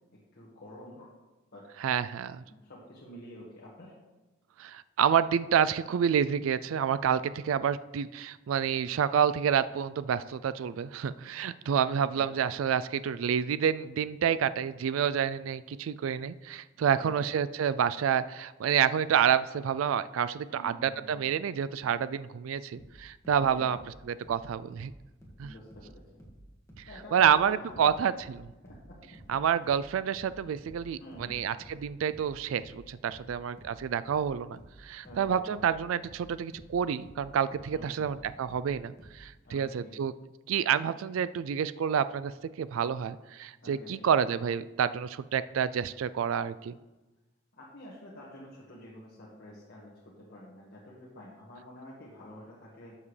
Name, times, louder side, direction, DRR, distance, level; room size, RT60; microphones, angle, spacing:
voice 1, 0.3-1.1 1.5-1.9 2.5-3.9 12.1-12.3 16.8-17.2 20.5-21.2 23.2-23.7 25.4-26.0 26.9-28.0 28.6-28.9 31.0-31.5 35.0-35.4 37.7-38.2 39.4-39.9 43.6-43.9 47.6-53.0, left 1 dB, 50° left, -6 dB, 1.7 m, -49 dB
voice 2, 1.8-2.4 4.6-23.8 24.3-24.9 25.4-25.5 27.1-28.5 29.3-40.1 40.5-42.3 42.6-46.7, right 8 dB, 75° right, 15 dB, 0.3 m, -28 dB
sound 1, 22.8-25.9 26.2-39.2, equal, 15° left, 1.8 m, -52 dB
12.5 x 7.2 x 3.3 m, 1.1 s
head